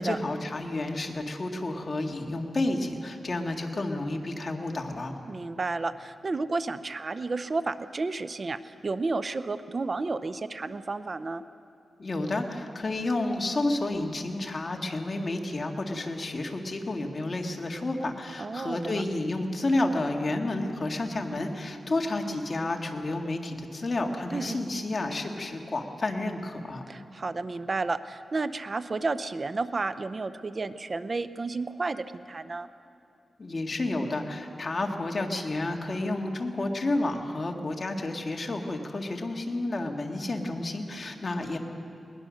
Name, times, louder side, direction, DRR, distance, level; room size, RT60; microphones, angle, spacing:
voice 1, 0.0-5.1 12.0-26.8 33.4-41.6, left 2 dB, 40° left, 2 dB, 2.0 m, -30 dB
voice 2, 5.3-11.4 18.4-19.0 24.3-24.6 26.9-32.7, right 3 dB, 40° right, 12 dB, 0.6 m, -32 dB
21.0 x 20.0 x 6.4 m, 2.5 s
cardioid pair, 85°, 0 cm